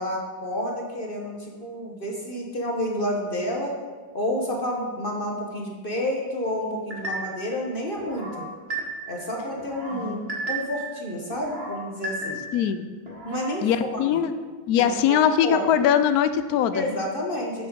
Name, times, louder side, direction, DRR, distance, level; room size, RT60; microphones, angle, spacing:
voice 1, 0.0-3.7 4.1-8.5 9.1-10.2 10.5-12.4 13.2-13.7 13.9-14.2 14.8-15.6 16.7-17.7, equal, 35° left, 0 dB, 1.0 m, -30 dB
sound 1, 6.9-7.5 8.0-9.2 9.6-10.9 11.3-12.7 13.1-13.6, right 2 dB, 35° right, 1.7 m, -34 dB
voice 2, 9.9-10.4 12.5-12.9 13.6-14.3 14.7-16.8, left 9 dB, 70° left, 11 dB, 0.9 m, -22 dB
7.7 x 7.5 x 5.1 m, 1.5 s
omnidirectional pair, 2.0 m